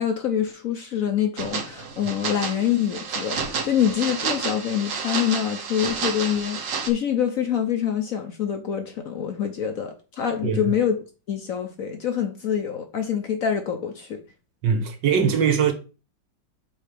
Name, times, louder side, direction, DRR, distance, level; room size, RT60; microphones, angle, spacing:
voice 1, 0.0-14.2, left 9 dB, 60° left, 1.0 m, -26 dB
sound 1, 1.4-6.9, right 5 dB, 50° right, 1.2 m, -30 dB
voice 2, 14.6-15.7, right 7 dB, 70° right, 1.8 m, -21 dB
5.6 x 4.4 x 5.1 m
omnidirectional pair, 2.0 m